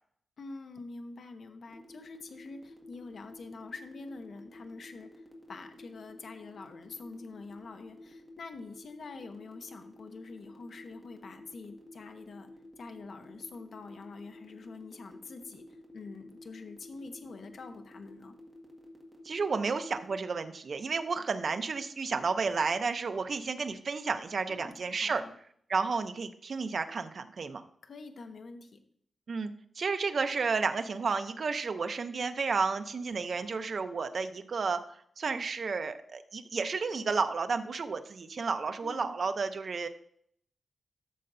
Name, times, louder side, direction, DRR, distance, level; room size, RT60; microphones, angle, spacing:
voice 1, 0.4-5.1 5.5-12.5 12.8-15.7 15.9-18.4 24.5-25.3 27.8-28.8 38.8-39.2, left 3 dB, 65° left, 6 dB, 0.8 m, -46 dB
sound 1, 1.7-20.1, right 1 dB, 5° right, 1.7 m, -55 dB
voice 2, 19.2-25.2 25.7-27.6 29.3-34.8 35.2-39.9, right 4 dB, 50° right, 8 dB, 0.6 m, -32 dB
12.5 x 6.6 x 2.6 m, 0.65 s
wide cardioid pair, 140°, 0 cm